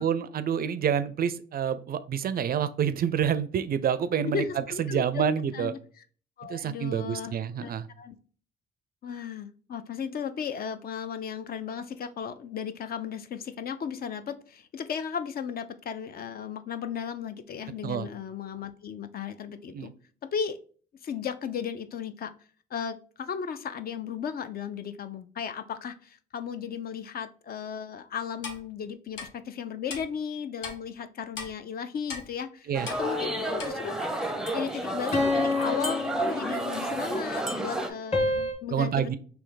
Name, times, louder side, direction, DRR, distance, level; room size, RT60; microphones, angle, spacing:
voice 1, 0.0-4.4 4.8-5.7 6.5-7.9 17.8-18.1 19.7-19.9 32.7-32.9 38.7-39.2, right 8 dB, 50° right, 13 dB, 0.4 m, -28 dB
voice 2, 4.2-5.2 5.5-5.8 6.4-7.7 8.0-8.1 9.0-19.9 20.2-20.6 21.0-22.3 22.7-32.7 33.0-34.1 34.5-39.1, left 7 dB, 50° left, 11 dB, 0.4 m, -35 dB
Clock, 28.4-28.6 29.2-29.3 29.9-30.0 30.6-30.8 31.4-31.5 32.1-32.3 32.9-33.0 33.6-33.7, left 4 dB, 70° left, 0.9 m, -37 dB
sound 1, 32.7-37.9, right 1 dB, 5° right, 0.6 m, -31 dB
sound 2, 33.0-34.0 35.1-37.0 38.1-38.5, left 3 dB, 30° left, 1.1 m, -29 dB
3.3 x 2.9 x 3.8 m, 0.43 s
cardioid pair, 90°, 20 cm